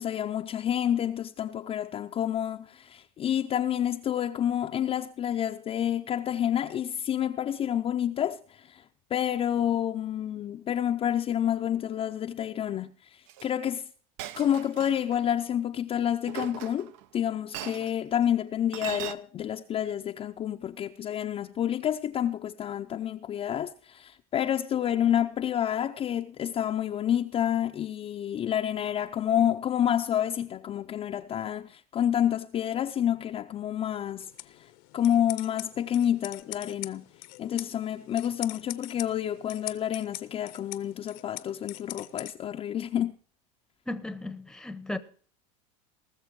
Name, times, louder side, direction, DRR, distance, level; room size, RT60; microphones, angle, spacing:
voice 1, 0.0-8.8 9.1-13.9 14.4-34.3 34.9-37.0 37.4-43.2, left 10 dB, 30° left, 0.5 m, -29 dB
Chink clink, 13.3-13.5 14.2-15.2 16.3-17.0 17.5-17.9 18.7-19.1, right 12 dB, 65° right, 0.8 m, -39 dB
sound 1, 34.2-42.3, left 20 dB, 60° left, 0.8 m, -43 dB
voice 2, 43.9-45.0, left 2 dB, 5° left, 0.8 m, -35 dB
19.5 x 6.7 x 4.7 m
supercardioid pair, 115°, 19 cm